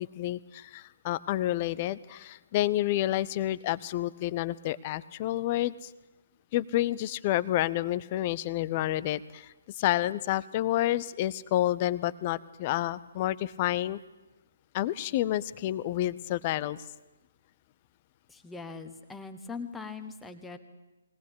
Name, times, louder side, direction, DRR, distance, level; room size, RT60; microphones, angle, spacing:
voice 1, 0.0-5.9 6.5-14.0 14.7-16.8, left 14 dB, 30° left, 18 dB, 0.7 m, -29 dB
voice 2, 18.3-20.6, left 4 dB, 5° left, 7 dB, 1.4 m, -41 dB
21.5 x 18.5 x 8.4 m, 1.1 s
figure-of-eight pair, 135°, 0 cm